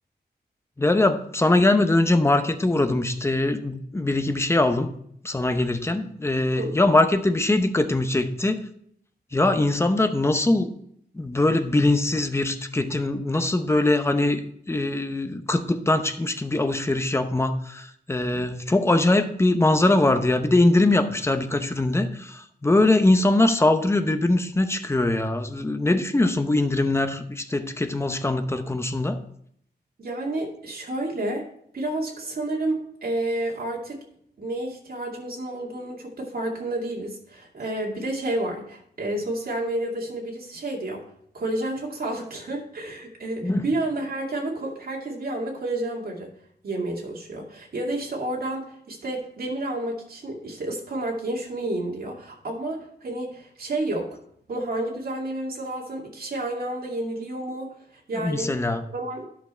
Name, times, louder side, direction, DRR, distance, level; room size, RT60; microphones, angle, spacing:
voice 1, 0.8-4.9 5.2-8.6 9.3-10.7 11.1-29.2 43.4-43.6 58.2-58.8, left 2 dB, 15° left, 8 dB, 0.7 m, -22 dB
voice 2, 30.0-31.4 31.7-34.0 34.4-41.0 41.3-46.3 46.6-54.2 54.5-58.5 58.9-59.3, right 1 dB, 60° right, -1 dB, 2.3 m, -30 dB
10.5 x 5.9 x 4.4 m, 0.68 s
wide cardioid pair, 155°, 17 cm